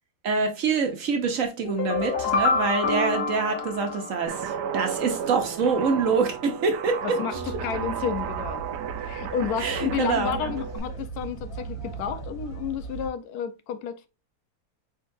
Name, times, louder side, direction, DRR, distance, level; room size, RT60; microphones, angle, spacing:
voice 1, 0.2-7.2 9.6-10.4, right 5 dB, 60° right, 1.1 m, -25 dB
sound 1, 1.6-4.7, left 4 dB, 55° left, 0.7 m, -27 dB
Guitar, 4.3-10.8, right 8 dB, 85° right, 1.2 m, -33 dB
voice 2, 7.0-8.6 9.0-14.1, left 8 dB, 75° left, 1.0 m, -31 dB
sound 2, 7.3-13.1, right 4 dB, 20° left, 1.9 m, -38 dB
4.7 x 3.8 x 2.6 m
omnidirectional pair, 1.8 m